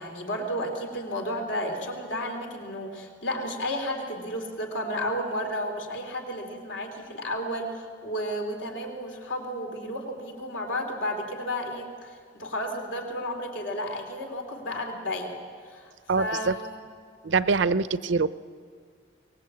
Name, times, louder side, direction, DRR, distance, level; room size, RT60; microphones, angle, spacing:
voice 1, 0.0-15.4 15.6-16.8, equal, 80° left, 2 dB, 3.2 m, -32 dB
voice 2, 16.1-16.5 17.2-18.3, right 4 dB, 75° right, 15 dB, 0.6 m, -24 dB
23.5 x 20.0 x 8.2 m, 2.1 s
head